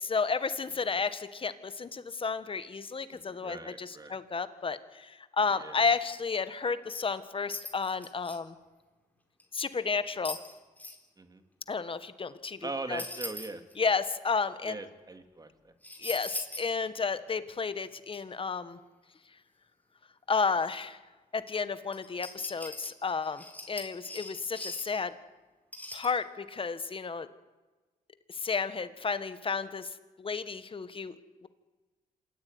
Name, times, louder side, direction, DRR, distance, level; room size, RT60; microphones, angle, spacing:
voice 1, 0.0-8.5 9.5-10.4 11.7-13.0 13.8-14.8 16.0-18.8 20.3-21.0 21.3-25.1 25.9-27.3 28.3-29.9 30.2-31.1, left 5 dB, 35° left, 12 dB, 1.6 m, -32 dB
voice 2, 3.1-4.2 5.5-6.0 11.2-11.4 12.6-13.6 14.6-15.7, right 3 dB, 25° right, 8 dB, 2.6 m, -41 dB
sound 1, 7.1-7.2 7.5-8.4 9.4-9.5 10.3-11.0 13.0-13.9 15.8-16.7 17.1-17.2 18.1-18.2 21.9-25.0 25.7-26.1, left 2 dB, 10° left, 4.1 m, -41 dB
27.0 x 14.5 x 9.7 m, 1.2 s
cardioid pair, 100°, 15 cm